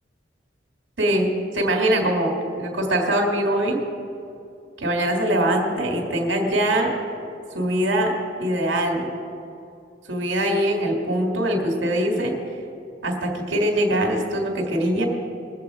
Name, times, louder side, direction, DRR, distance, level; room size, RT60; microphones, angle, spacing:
voice 1, 1.0-3.8 4.8-6.9 7.5-9.1 10.1-12.3 13.0-15.1, right 1 dB, 80° right, 1 dB, 1.9 m, -22 dB
21.5 x 7.6 x 4.7 m, 2.6 s
head